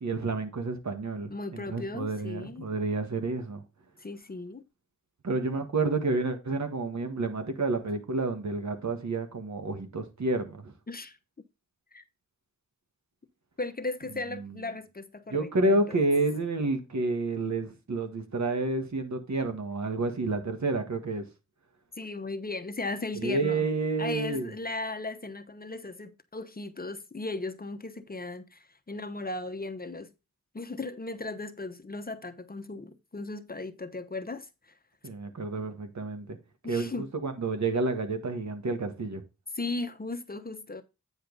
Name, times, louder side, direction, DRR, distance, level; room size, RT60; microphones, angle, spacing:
voice 1, 0.0-3.6 5.2-10.7 14.3-14.6 15.3-21.2 23.2-24.5 35.0-36.4 36.7-39.2, right 3 dB, 65° right, 1.7 m, -29 dB
voice 2, 1.3-2.7 4.0-4.6 10.9-11.2 11.9-12.0 13.6-16.0 22.0-23.7 24.0-30.1 30.5-34.5 36.6-37.1 39.5-40.8, left 2 dB, 30° left, 0.9 m, -37 dB
9.0 x 5.1 x 4.0 m
cardioid pair, 65°, 31 cm